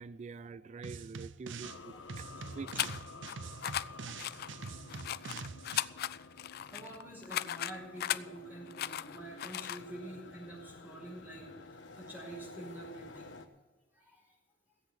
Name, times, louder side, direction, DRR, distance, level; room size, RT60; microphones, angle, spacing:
voice 1, 0.0-2.3 2.5-2.9, right 4 dB, 40° right, 0.4 m, -46 dB
sound 1, 0.8-1.8 2.1-5.9, right 4 dB, 75° right, 0.6 m, -45 dB
sound 2, 1.6-13.5, left 3 dB, 70° left, 1.2 m, -51 dB
voice 2, 2.4-2.9 3.4-3.5 4.0-4.1 5.1-5.2 6.4-11.5 11.9-13.4 13.9-14.3, right 1 dB, 10° right, 5.3 m, -48 dB
sound 3, 2.7-3.3 3.6-3.8 4.2-8.2 8.7-9.8, left 11 dB, 55° left, 0.4 m, -37 dB
16.0 x 8.0 x 6.9 m
head